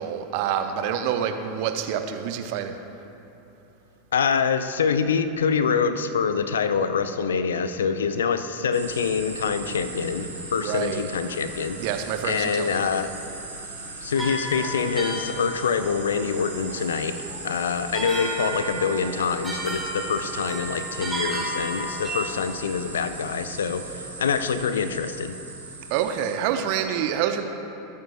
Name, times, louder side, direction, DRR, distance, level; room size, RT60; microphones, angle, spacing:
voice 1, 0.0-2.8 10.6-11.1 11.8-13.1 25.9-27.4, right 9 dB, 50° right, 7 dB, 0.8 m, -27 dB
voice 2, 4.1-11.8 12.2-13.1 14.0-17.1 17.4-25.4, left 6 dB, 70° left, 11 dB, 0.5 m, -25 dB
sound 1, 8.7-26.4, right 3 dB, 80° right, 2.1 m, -38 dB
sound 2, 14.2-22.5, right 1 dB, 10° right, 2.4 m, -34 dB
20.5 x 9.3 x 2.6 m, 2.9 s
figure-of-eight pair, 85°, 0 cm